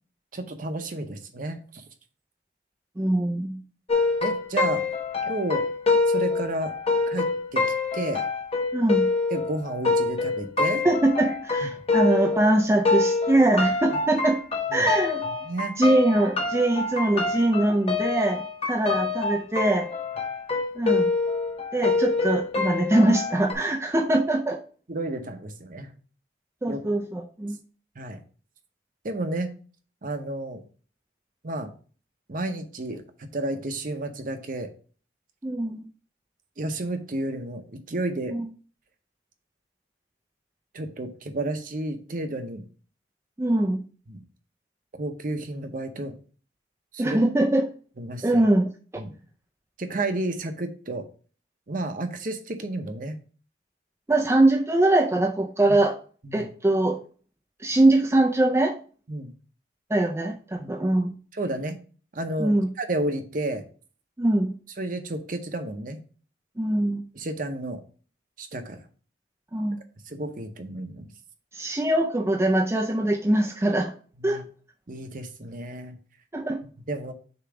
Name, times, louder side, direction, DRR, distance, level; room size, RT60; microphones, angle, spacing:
voice 1, 0.3-1.8 4.2-4.8 5.2-5.6 6.1-6.7 7.1-7.6 7.9-8.2 9.3-10.8 14.7-14.8 15.3-15.8 24.9-25.9 26.7-26.8 28.0-28.2 29.0-29.5 30.0-30.6 31.4-31.7 32.3-34.7 36.6-38.3 40.7-42.6 44.1-44.2 45.0-46.1 46.9-47.2 48.0-48.4 49.0-49.1 49.8-51.0 51.7-53.2 55.7-55.8 56.2-56.5 59.1-59.3 60.6-60.7 61.3-61.8 62.1-63.6 64.8-66.0 67.1-67.8 68.4-68.8 70.0-71.1 74.2-74.4 74.9-76.0 76.9-77.1, right 2 dB, 40° right, 7 dB, 0.7 m, -31 dB
voice 2, 3.0-3.6 8.7-9.1 10.8-14.4 14.7-15.2 15.8-18.4 18.7-19.9 20.8-21.1 21.7-24.6 26.6-27.6 35.4-35.9 38.3-38.5 43.4-43.8 47.0-47.7 48.2-48.7 54.1-56.0 56.3-57.0 57.6-58.8 59.9-61.1 62.4-62.7 64.2-64.5 66.6-67.0 69.5-69.8 71.5-73.9 74.2-74.4 76.3-76.6, right 1 dB, 15° right, 2 dB, 0.4 m, -22 dB
sound 1, 3.9-12.6 12.8-23.5, left 3 dB, 30° left, 1.0 m, -26 dB
6.8 x 3.0 x 4.7 m, 0.40 s
head